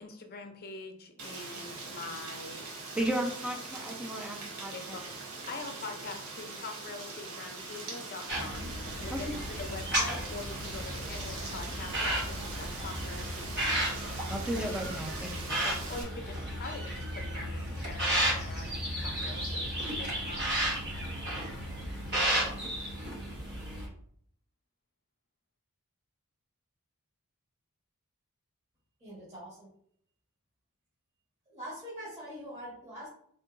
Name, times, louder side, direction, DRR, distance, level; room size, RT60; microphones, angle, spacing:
voice 1, 0.0-2.7 4.7-5.0 5.5-14.2 15.6-18.7 19.0-20.4, left 3 dB, 45° left, 5 dB, 0.6 m, -44 dB
Rain, 1.2-16.0, right 3 dB, 75° right, 1.0 m, -42 dB
voice 2, 3.0-5.0 9.1-9.3 14.3-15.6, right 1 dB, 5° right, 2 dB, 0.5 m, -34 dB
sound 1, 8.3-23.9, right 1 dB, 50° right, 1.0 m, -33 dB
voice 3, 29.0-29.7 31.5-33.1, equal, 30° right, -9 dB, 1.5 m, -43 dB
3.8 x 3.6 x 2.5 m, 0.65 s
head